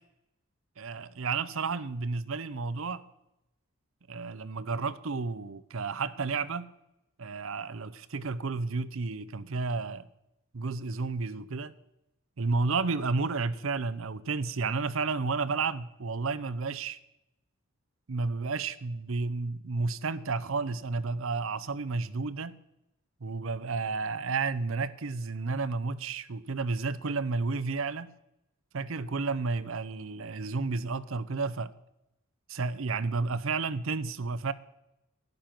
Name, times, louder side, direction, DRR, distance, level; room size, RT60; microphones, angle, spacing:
voice 1, 0.8-3.0 4.1-6.7 7.2-10.1 10.5-11.7 12.4-17.0 18.1-22.6 23.2-28.1 28.7-31.7 32.5-34.5, right 4 dB, 65° right, 0.6 m, -31 dB
12.0 x 10.5 x 5.9 m
head